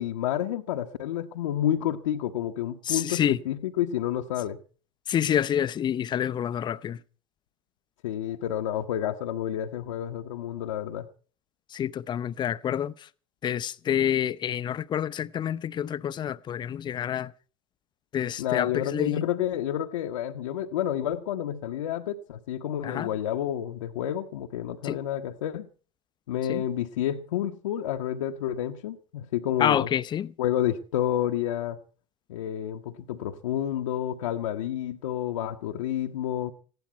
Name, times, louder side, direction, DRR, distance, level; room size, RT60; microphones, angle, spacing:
voice 1, 0.0-4.6 8.0-11.1 18.4-25.7 26.3-29.9 30.4-31.8 32.3-36.5, left 11 dB, 60° left, 1.1 m, -29 dB
voice 2, 2.9-3.4 5.1-7.0 11.7-12.9 13.4-17.3 18.1-19.2 22.8-23.1 24.8-25.0 26.5-26.6 29.6-30.3, left 9 dB, 25° left, 0.7 m, -28 dB
18.5 x 16.0 x 4.6 m
figure-of-eight pair, 80°, 18 cm